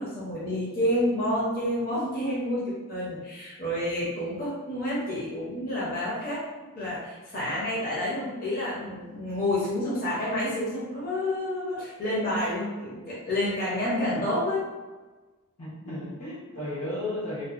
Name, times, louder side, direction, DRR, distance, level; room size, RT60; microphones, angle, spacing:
voice 1, 0.0-6.4 6.8-14.6, left 1 dB, 40° left, -8 dB, 0.7 m, -29 dB
voice 2, 15.6-17.4, left 1 dB, 80° left, -7 dB, 1.1 m, -34 dB
2.6 x 2.4 x 2.4 m, 1.3 s
head